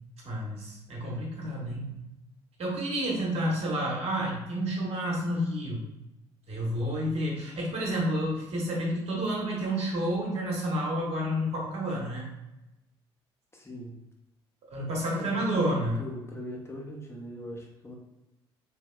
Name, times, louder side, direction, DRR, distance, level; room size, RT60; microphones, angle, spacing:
voice 1, 0.2-2.0 2.6-5.8 6.5-12.2 14.7-16.0, equal, 50° right, -3 dB, 1.3 m, -30 dB
voice 2, 13.5-13.9 15.1-18.0, equal, 20° left, -1 dB, 0.9 m, -40 dB
3.4 x 2.9 x 2.2 m, 0.93 s
hypercardioid pair, 50°, 13 cm